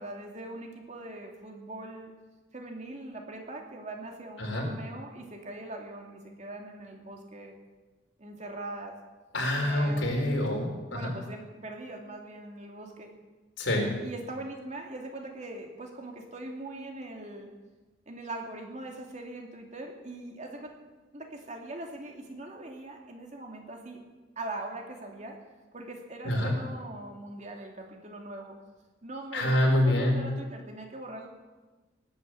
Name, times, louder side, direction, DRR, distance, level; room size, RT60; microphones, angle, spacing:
voice 1, 0.0-2.1 2.5-7.5 8.2-8.9 9.6-10.2 10.9-13.1 14.0-17.5 18.1-20.7 21.1-24.0 24.4-25.4 25.7-28.5 29.0-31.3, right 2 dB, 40° right, 1 dB, 2.5 m, -41 dB
voice 2, 4.4-4.7 9.3-11.1 13.6-13.9 26.2-26.5 29.3-30.2, left 1 dB, 85° left, 1 dB, 4.1 m, -26 dB
18.5 x 9.0 x 7.8 m, 1.2 s
head